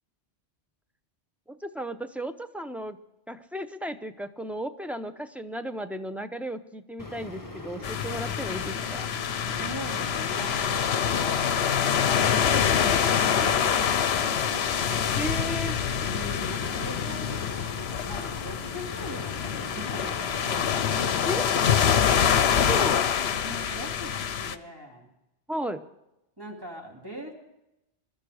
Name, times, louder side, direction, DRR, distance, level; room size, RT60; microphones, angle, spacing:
voice 1, 1.5-3.0 3.3-9.1 15.1-15.8 21.2-21.5 22.3-23.0 25.5-25.8, right 1 dB, ahead, 8 dB, 0.5 m, -35 dB
sound 1, 7.0-22.0, left 2 dB, 20° left, 1.1 m, -41 dB
sound 2, 7.8-24.6, left 8 dB, 65° left, 1.0 m, -26 dB
voice 2, 9.5-14.7 16.0-20.2 20.5-21.6 22.1-22.9 23.4-25.1 26.4-27.3, equal, 20° right, -1 dB, 2.5 m, -42 dB
21.5 x 12.5 x 4.9 m, 0.89 s
omnidirectional pair, 1.2 m